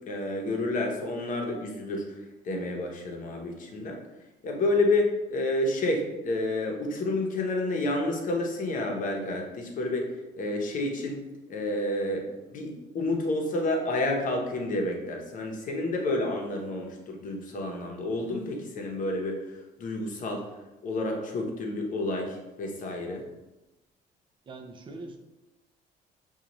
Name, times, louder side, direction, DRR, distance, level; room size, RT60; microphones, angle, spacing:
voice 1, 0.1-4.0 4.4-11.2 11.5-20.4 20.8-23.2, left 2 dB, 50° left, 1 dB, 0.8 m, -30 dB
voice 2, 24.5-25.2, right 2 dB, 30° right, 5 dB, 0.4 m, -42 dB
5.0 x 2.4 x 2.9 m, 1.0 s
cardioid pair, 110°, 17 cm